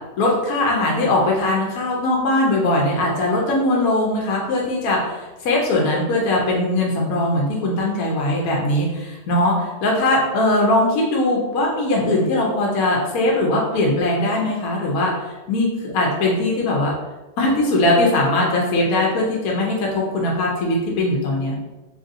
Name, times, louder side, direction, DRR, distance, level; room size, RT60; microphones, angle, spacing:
voice 1, 0.2-15.1 15.5-16.9 17.4-21.5, left 1 dB, 70° left, -2 dB, 1.0 m, -20 dB
3.1 x 2.6 x 2.5 m, 1.1 s
omnidirectional pair, 1.7 m